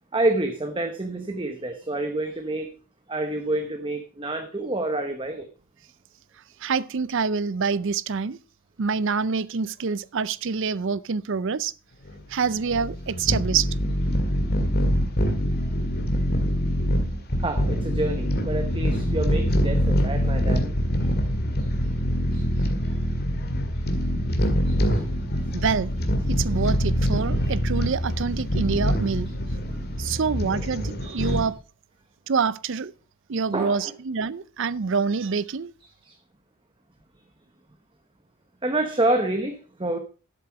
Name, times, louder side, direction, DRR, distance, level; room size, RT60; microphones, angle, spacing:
voice 1, 0.1-2.7 3.1-5.5 17.4-20.7 22.3-22.7 24.6-25.0 27.4-27.5 31.2-31.4 33.5-33.9 36.0-36.1 38.6-40.0, right 2 dB, 25° right, 1.0 m, -28 dB
voice 2, 6.6-8.4 8.8-11.7 12.3-13.7 25.5-25.9 26.3-29.3 30.0-31.5 32.3-32.9 33.3-35.7, right 5 dB, 55° right, 0.5 m, -26 dB
sound 1, 12.0-31.5, equal, 45° left, 2.0 m, -24 dB
12.5 x 7.7 x 4.7 m
head